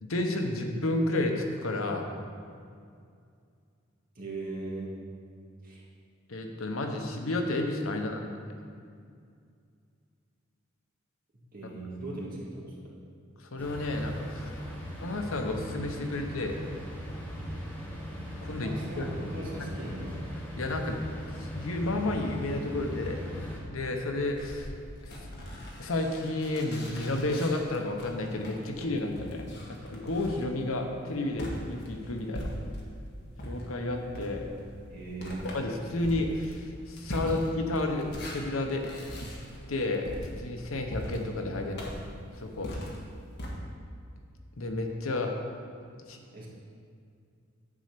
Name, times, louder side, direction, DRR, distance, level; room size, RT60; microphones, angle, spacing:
voice 1, 0.0-2.0 6.3-8.5 13.4-14.6 15.0-16.6 18.4-19.1 20.6-21.0 21.4-24.7 25.8-32.5 33.4-34.4 35.4-38.8 39.2-39.3 39.7-40.1 40.4-41.9 42.3-42.7 44.6-45.3 46.1-46.2, left 2 dB, 85° left, 3 dB, 1.0 m, -31 dB
voice 2, 4.2-4.9 5.6-5.8 7.9-8.0 11.5-12.8 18.6-20.2 34.9-35.5 37.0-37.4 41.6-42.1 46.3-46.5, right 2 dB, 45° right, -4 dB, 1.9 m, -39 dB
sound 1, 13.6-23.6, equal, 10° left, 1.4 m, -39 dB
sound 2, 24.2-33.0 33.4-43.5, equal, 55° left, 1.5 m, -41 dB
10.0 x 4.3 x 6.7 m, 2.3 s
head